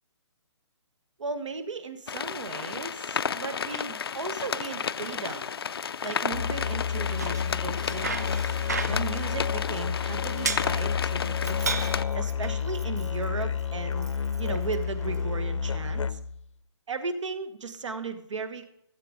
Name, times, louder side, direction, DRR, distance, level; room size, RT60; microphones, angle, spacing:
voice 1, 1.2-5.5 6.0-8.3 8.8-11.8 12.1-14.1 14.4-16.2 16.9-18.7, right 4 dB, 85° right, 10 dB, 1.6 m, -36 dB
sound 1, 2.1-12.0, left 7 dB, 55° left, 0.4 m, -32 dB
Musical instrument, 6.3-16.4, left 7 dB, 85° left, 0.7 m, -30 dB
Bicycle, 6.9-15.3, right 5 dB, 35° right, 0.4 m, -38 dB
13.5 x 7.8 x 5.0 m, 0.79 s
hypercardioid pair, 180°, 15 cm